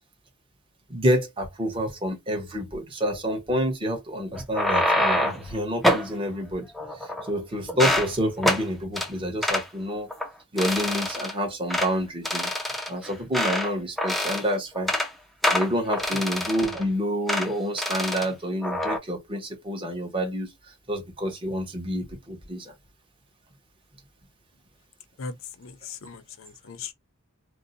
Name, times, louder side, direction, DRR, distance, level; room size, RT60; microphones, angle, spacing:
voice 1, 0.9-6.7 7.0-10.1 10.5-14.9 15.5-20.5 20.9-22.7, equal, 25° right, 0.9 m, -28 dB
sound 1, 4.3-5.5 5.8-6.1 6.7-7.4 7.7-8.1 8.4-8.6 9.0-9.1 9.4-9.7 10.1-10.3 10.6-11.3 11.7-11.9 12.2-13.7 14.0-14.5 14.8-15.1 15.4-16.8 17.3-17.5 17.8-18.3 18.6-19.0, left 1 dB, ahead, 0.4 m, -25 dB
voice 2, 25.2-26.9, left 5 dB, 70° left, 0.6 m, -39 dB
2.6 x 2.1 x 3.9 m
head